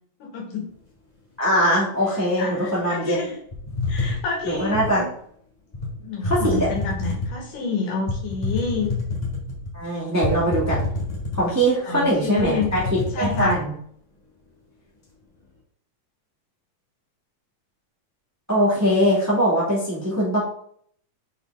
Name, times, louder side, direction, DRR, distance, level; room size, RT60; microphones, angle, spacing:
voice 1, 0.2-0.7 2.4-3.4 3.9-5.0 6.0-8.9 11.8-12.7 13.1-13.6, left 5 dB, 75° left, -2 dB, 3.1 m, -28 dB
voice 2, 1.4-3.2 4.4-5.0 6.2-6.7 9.7-10.8 11.3-13.7 18.5-20.4, equal, 5° right, -6 dB, 1.6 m, -21 dB
sound 1, 3.5-5.0 5.7-5.9 6.2-7.4 8.1-9.7 10.2-11.7 12.0-12.1 12.4-13.6, left 2 dB, 30° left, 0.7 m, -27 dB
6.9 x 4.2 x 3.5 m, 0.63 s
omnidirectional pair, 3.7 m